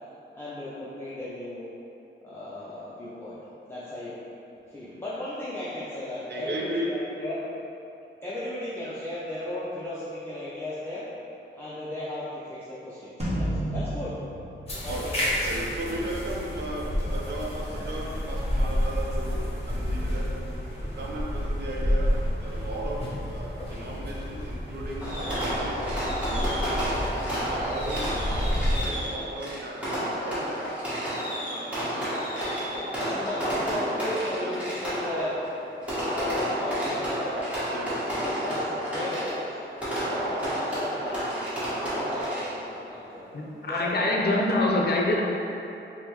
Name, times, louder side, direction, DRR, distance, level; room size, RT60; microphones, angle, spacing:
voice 1, 0.3-1.7 2.2-3.4 3.7-4.2 4.7-7.4 8.2-11.0 11.6-14.2 14.8-15.3 32.9-35.4 36.0-37.4 38.0-39.5 40.4-41.3 41.8-43.3 43.7-43.9 44.3-44.7, left 1 dB, 10° left, -11 dB, 0.6 m, -35 dB
voice 2, 6.3-6.9 8.8-8.9 14.9-15.0 15.4-19.4 19.7-20.3 20.9-22.1 22.4-25.0 25.4-30.6 31.5-32.1 33.1-33.5 34.0-34.1 34.4-34.6 37.7-38.0, right 1 dB, 55° right, -3 dB, 0.6 m, -36 dB
sound 1, 13.2-15.7, right 1 dB, 30° right, 0.9 m, -32 dB
sound 2, 14.7-28.9, equal, 30° left, 0.9 m, -30 dB
Fireworks, 25.0-42.8, equal, 5° right, 1.2 m, -30 dB
voice 3, 43.3-45.2, left 2 dB, 55° left, -2 dB, 0.6 m, -24 dB
5.2 x 2.1 x 3.1 m, 2.8 s
wide cardioid pair, 110°, 20 cm